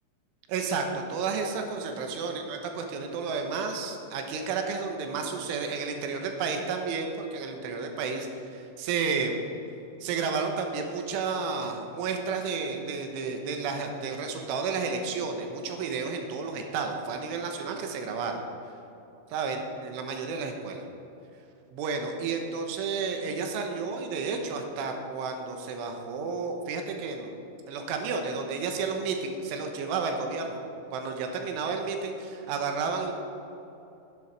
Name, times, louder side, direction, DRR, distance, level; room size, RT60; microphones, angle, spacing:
voice 1, 0.5-9.4 10.0-18.4 19.3-20.9 21.7-27.4 27.7-30.7 30.9-33.1, right 4 dB, 85° right, 4 dB, 3.6 m, -31 dB
14.0 x 10.5 x 4.8 m, 3.0 s
omnidirectional pair, 5.4 m